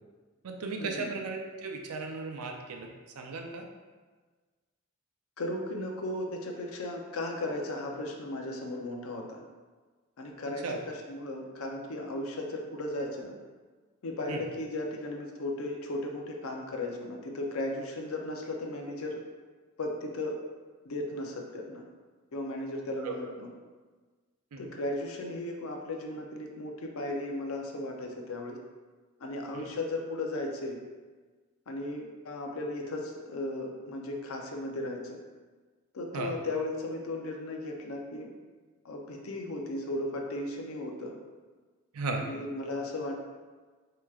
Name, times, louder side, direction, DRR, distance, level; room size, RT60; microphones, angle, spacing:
voice 1, 0.4-2.9 3.2-3.7 10.6-10.8 14.3-14.4 23.0-23.1 24.5-24.7 29.5-29.7 36.1-36.3 41.9-42.2, right 3 dB, 85° right, 2 dB, 0.5 m, -36 dB
voice 2, 5.4-9.4 10.2-13.3 14.0-19.2 19.8-20.4 20.8-21.8 22.3-23.5 24.6-28.6 29.2-30.8 31.7-35.2 35.9-38.3 38.8-41.1 42.2-43.1, left 1 dB, 75° left, 2 dB, 0.5 m, -36 dB
4.6 x 2.9 x 2.4 m, 1.4 s
head